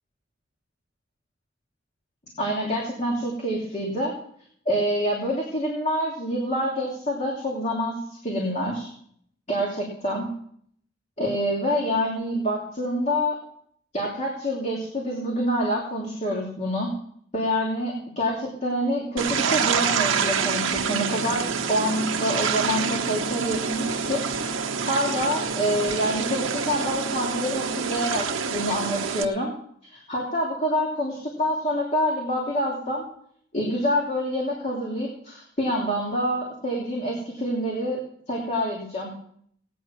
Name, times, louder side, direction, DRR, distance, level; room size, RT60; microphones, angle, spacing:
voice 1, 2.4-4.1 4.6-8.9 9.5-10.3 11.2-13.4 13.9-16.9 17.3-24.6 24.8-29.5 29.8-33.1 33.5-38.0 38.3-39.1, equal, 35° left, -3 dB, 2.9 m, -27 dB
sound 1, 19.2-29.2, right 6 dB, 90° right, 1.1 m, -27 dB
17.5 x 9.4 x 5.9 m, 0.65 s
head